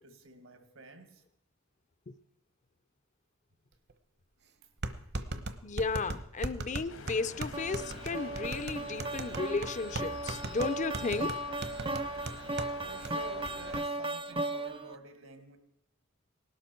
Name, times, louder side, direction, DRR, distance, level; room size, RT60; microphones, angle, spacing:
voice 1, 0.0-1.2 4.4-4.5 12.8-15.6, right 3 dB, 80° right, 2.0 m, -49 dB
sound 1, 3.9-4.0 4.8-12.7 13.0-13.1 13.5-13.8, right 2 dB, 55° right, 1.0 m, -38 dB
voice 2, 5.6-11.4, left 4 dB, 35° left, 0.5 m, -34 dB
sound 2, 6.9-13.9, left 3 dB, 80° left, 2.0 m, -48 dB
sound 3, 7.5-15.0, right 2 dB, 25° right, 0.6 m, -37 dB
18.5 x 12.5 x 4.5 m
head